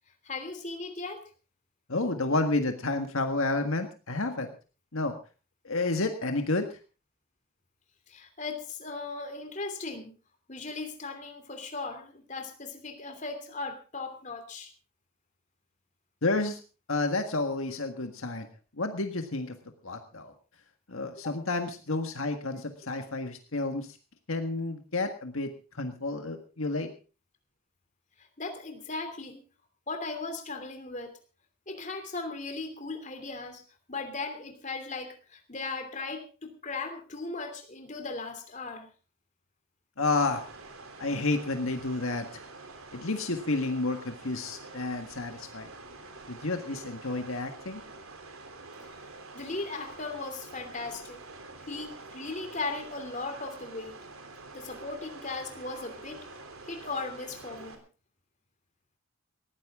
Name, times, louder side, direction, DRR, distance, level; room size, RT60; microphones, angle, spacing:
voice 1, 0.2-1.2 8.1-10.1 10.5-14.7 21.2-21.3 28.2-29.4 29.9-31.1 31.7-33.6 33.9-38.9 49.3-51.2 51.7-54.0 54.5-56.2 56.7-57.8, left 3 dB, 35° left, 6 dB, 2.9 m, -37 dB
voice 2, 1.9-4.5 4.9-5.2 5.6-6.7 16.2-16.6 16.9-18.5 18.8-19.5 19.8-20.3 20.9-23.9 24.3-25.5 25.8-26.9 40.0-40.4 41.0-42.3 42.9-45.7 46.3-47.8, left 2 dB, 70° left, 5 dB, 1.7 m, -30 dB
sound 1, 40.0-57.7, right 3 dB, 75° right, 3.3 m, -47 dB
19.5 x 15.0 x 3.7 m, 0.35 s
head